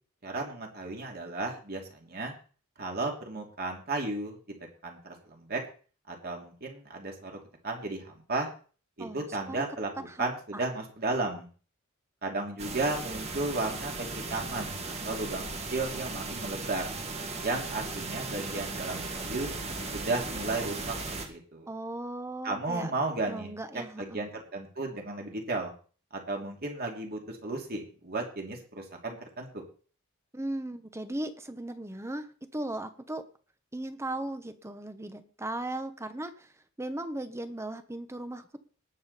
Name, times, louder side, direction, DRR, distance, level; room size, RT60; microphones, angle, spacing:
voice 1, 0.2-2.3 2.8-4.4 4.8-5.6 6.1-7.3 7.6-8.5 9.0-11.5 12.2-16.8 17.4-19.5 19.9-21.0 21.3-21.7 22.4-23.5 24.0-25.7 26.1-29.6, right 2 dB, 45° right, 1 dB, 2.8 m, -34 dB
voice 2, 9.0-9.6 10.0-10.6 21.7-22.9 23.3-24.2 30.3-33.2 33.7-36.5 36.8-38.6, right 1 dB, 15° right, 10 dB, 1.0 m, -37 dB
sound 1, 12.6-21.3, right 3 dB, 30° right, 2.0 m, -37 dB
19.0 x 7.1 x 4.2 m, 0.39 s
head